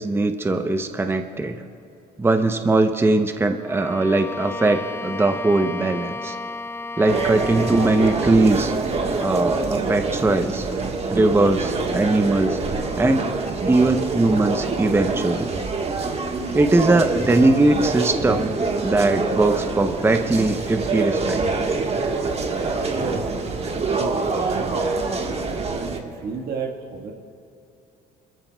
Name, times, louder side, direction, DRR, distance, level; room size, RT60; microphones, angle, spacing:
voice 1, 0.0-1.6 2.2-6.4 7.0-8.7 9.1-10.7 11.1-12.6 13.0-15.5 16.5-18.5 18.8-21.7, right 2 dB, 15° right, 7 dB, 0.7 m, -20 dB
Bowed string instrument, 3.6-8.5, left 3 dB, 15° left, 0.4 m, -33 dB
sound 1, 7.1-26.0, right 3 dB, 35° right, 1.4 m, -25 dB
voice 2, 22.9-23.2 23.9-25.0 26.0-27.1, right 3 dB, 65° right, 2 dB, 1.6 m, -31 dB
27.5 x 14.0 x 2.3 m, 2.7 s
supercardioid pair, 75°, 17 cm